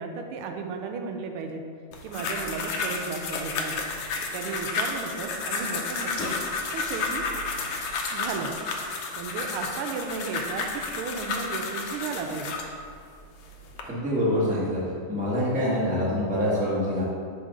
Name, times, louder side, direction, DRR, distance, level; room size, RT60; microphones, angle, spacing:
voice 1, 0.0-1.6 2.0-3.8 4.3-6.3 6.7-7.3 8.1-8.5 9.2-12.6, right 5 dB, 85° right, 4 dB, 1.5 m, -34 dB
sound 1, 1.9-12.7 13.4-13.8, left 4 dB, 90° left, 1.6 m, -31 dB
voice 2, 13.8-14.8 15.1-17.0, equal, 5° right, -7 dB, 0.8 m, -25 dB
6.5 x 2.9 x 5.0 m, 2.2 s
omnidirectional pair, 2.3 m